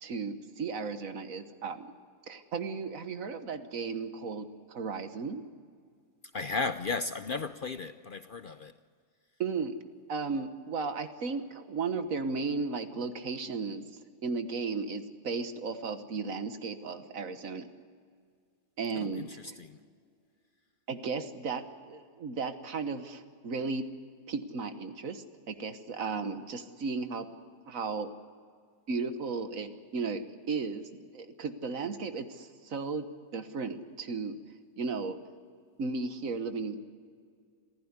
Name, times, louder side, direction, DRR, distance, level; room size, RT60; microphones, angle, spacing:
voice 1, 0.0-2.0 2.3-5.5 9.4-9.8 10.1-13.9 14.2-17.7 18.8-19.3 20.9-23.9 24.3-27.3 27.7-28.1 28.9-33.1 33.3-34.4 34.8-35.2 35.8-36.8, right 4 dB, 70° right, 1.7 m, -35 dB
voice 2, 6.3-8.8 18.9-19.8, left 4 dB, 50° left, 0.7 m, -35 dB
27.0 x 15.0 x 9.7 m
omnidirectional pair, 1.5 m